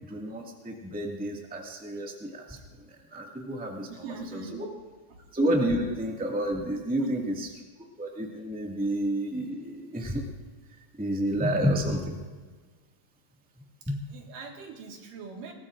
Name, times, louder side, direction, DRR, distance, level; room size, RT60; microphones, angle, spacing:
voice 1, 0.1-2.6 2.9-3.9 4.3-4.6 5.3-7.5 8.0-10.2 11.0-12.2 13.9-14.0, equal, 5° right, -1 dB, 1.0 m, -30 dB
voice 2, 3.9-4.6 5.1-5.2 7.0-7.4 13.8-15.5, right 5 dB, 90° right, 1 dB, 3.4 m, -42 dB
22.0 x 18.5 x 2.6 m, 1.4 s
omnidirectional pair, 3.7 m